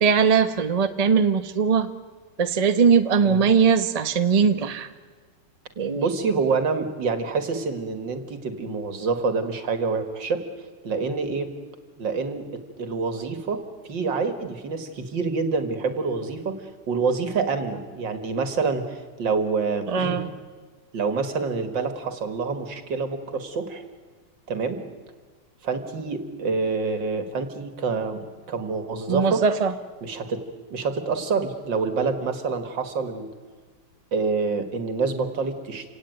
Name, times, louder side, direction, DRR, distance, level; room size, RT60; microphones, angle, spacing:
voice 1, 0.0-1.9 2.4-4.9 5.8-6.1 19.9-20.3 29.1-29.7, right 6 dB, 25° right, 8 dB, 0.9 m, -20 dB
voice 2, 6.0-10.4 10.8-11.5 12.0-13.6 13.9-16.6 16.9-20.2 20.9-23.9 24.5-24.9 25.6-28.2 28.5-29.4 30.0-30.4 30.7-33.3 34.1-35.9, right 4 dB, 85° right, 8 dB, 2.6 m, -27 dB
27.5 x 17.5 x 9.2 m, 1.5 s
omnidirectional pair, 1.9 m